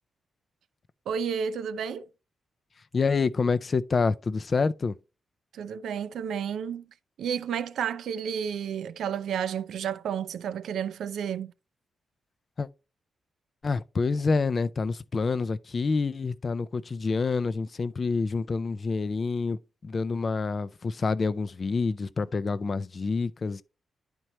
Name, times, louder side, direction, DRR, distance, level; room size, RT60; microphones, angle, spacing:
voice 1, 1.1-2.1 5.5-6.8 7.2-11.5, right 8 dB, 90° right, 0.5 m, -31 dB
voice 2, 2.9-4.9 12.6-12.7 13.6-23.6, left 4 dB, 30° left, 0.4 m, -27 dB
11.0 x 4.5 x 3.0 m
wide cardioid pair, 160°, 0 cm